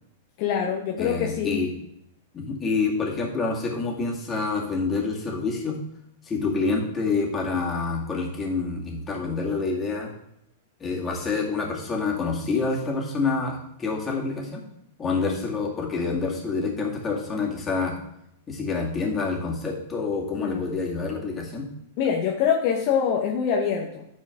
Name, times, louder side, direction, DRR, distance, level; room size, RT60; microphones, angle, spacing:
voice 1, 0.4-1.6 20.4-20.6 22.0-24.0, left 7 dB, 50° left, 1 dB, 1.0 m, -24 dB
voice 2, 1.0-1.7 2.3-5.8 6.2-10.1 10.8-14.6 15.0-17.9 18.5-21.7, left 4 dB, 20° left, -2 dB, 2.4 m, -27 dB
11.5 x 4.5 x 3.7 m, 0.77 s
hypercardioid pair, 110°, 0 cm